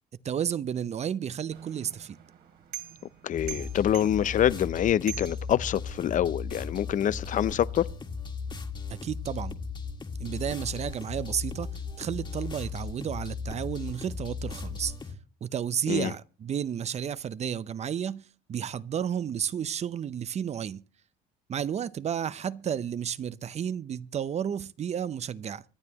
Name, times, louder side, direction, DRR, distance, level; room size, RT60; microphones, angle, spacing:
voice 1, 0.2-2.2 8.9-9.5 10.2-11.7 12.0-14.9 15.4-20.8 21.5-25.6, right 8 dB, 40° right, 0.7 m, -32 dB
sound 1, 1.5-6.2, right 13 dB, 70° right, 3.1 m, -45 dB
voice 2, 3.2-7.9 15.9-16.1, left 10 dB, 50° left, 0.5 m, -26 dB
sound 2, 3.4-15.1, left 5 dB, 25° left, 1.7 m, -37 dB
25.0 x 9.8 x 2.9 m
cardioid pair, 110°, 17 cm